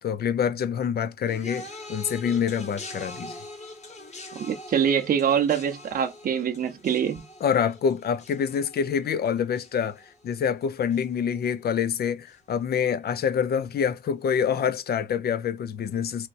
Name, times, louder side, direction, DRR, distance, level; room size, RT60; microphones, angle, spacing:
voice 1, 0.0-3.4 7.4-16.3, left 7 dB, 50° left, 0.6 m, -26 dB
sound 1, 1.3-10.6 10.9-11.4 12.3-12.4, left 2 dB, 35° left, 1.4 m, -43 dB
voice 2, 4.3-7.2, right 8 dB, 45° right, 0.6 m, -24 dB
3.2 x 2.9 x 2.5 m
cardioid pair, 90°, 20 cm